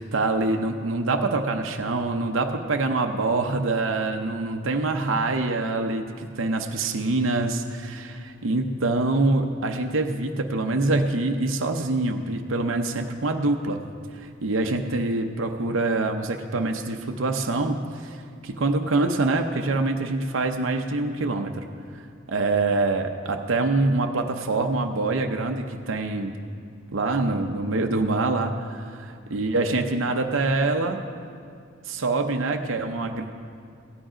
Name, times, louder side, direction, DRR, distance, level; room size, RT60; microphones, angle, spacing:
voice 1, 0.0-13.8 14.1-18.2 18.4-21.6 22.3-26.3 26.9-28.9 29.3-31.0 31.9-33.3, right 2 dB, 75° right, 4 dB, 0.7 m, -25 dB
15.0 x 8.8 x 5.0 m, 2.3 s
head